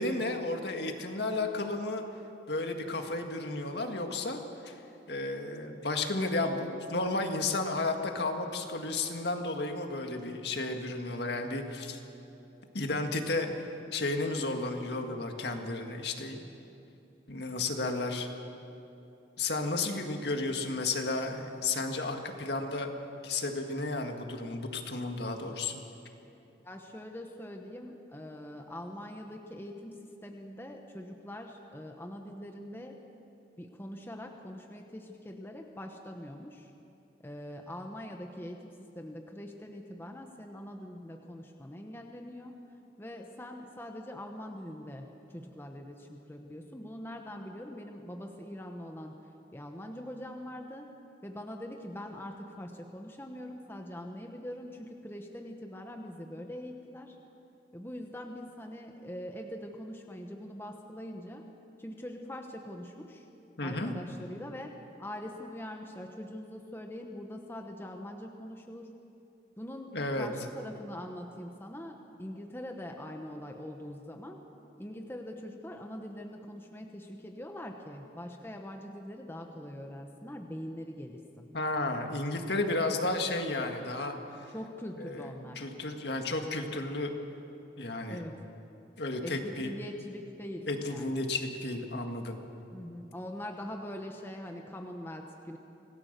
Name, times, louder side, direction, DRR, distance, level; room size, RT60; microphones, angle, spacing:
voice 1, 0.0-2.0 2.5-4.7 5.1-12.0 12.7-13.5 13.9-16.4 17.3-18.3 19.4-22.9 23.2-25.8 63.6-63.9 69.9-70.3 81.5-84.1 85.0-85.3 85.6-87.1 87.8-88.2 89.0-89.7 90.7-92.4, left 2 dB, 60° left, 4 dB, 1.9 m, -33 dB
voice 2, 26.6-33.0 33.6-36.7 37.2-42.5 43.0-49.2 49.5-50.9 51.2-57.2 57.7-61.4 61.8-63.2 63.6-64.7 65.0-68.9 69.6-74.4 74.8-81.5 84.5-85.7 88.1-88.4 89.2-91.4 92.7-95.6, left 1 dB, 10° left, 3 dB, 1.1 m, -43 dB
26.5 x 17.5 x 6.7 m, 2.8 s
head